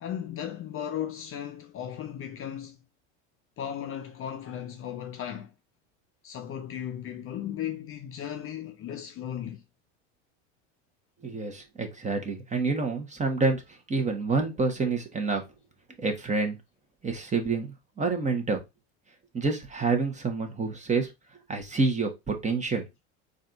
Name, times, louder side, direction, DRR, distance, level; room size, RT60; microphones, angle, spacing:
voice 1, 0.0-2.8 3.6-5.5 6.2-9.6, left 10 dB, 40° left, 0.7 m, -36 dB
voice 2, 11.2-13.6 13.9-15.4 16.0-16.6 17.0-18.6 19.3-21.1 21.5-22.8, right 4 dB, 20° right, 1.2 m, -28 dB
4.1 x 2.6 x 3.8 m
hypercardioid pair, 95°, 35 cm